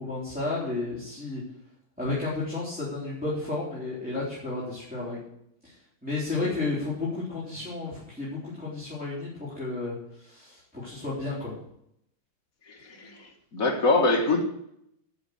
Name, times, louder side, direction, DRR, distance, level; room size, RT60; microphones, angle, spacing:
voice 1, 0.0-1.4 2.0-5.2 5.6-5.7 6.0-11.5, left 3 dB, 5° right, -9 dB, 3.6 m, -32 dB
voice 2, 6.4-6.7 12.7-14.4, left 2 dB, 40° left, 3 dB, 1.8 m, -25 dB
11.0 x 6.3 x 8.0 m, 0.76 s
omnidirectional pair, 2.4 m